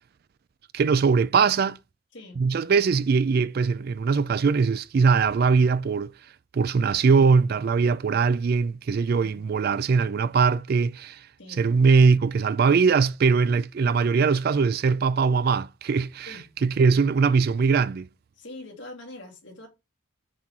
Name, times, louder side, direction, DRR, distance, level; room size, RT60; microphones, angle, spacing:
voice 1, 0.7-1.7 2.4-6.1 6.5-11.2 11.6-16.3 16.6-18.1, right 5 dB, 50° right, 0.3 m, -21 dB
voice 2, 2.1-2.4 11.4-11.6 16.3-16.4 18.4-19.7, left 2 dB, 55° left, 2.3 m, -43 dB
6.0 x 4.4 x 4.7 m
head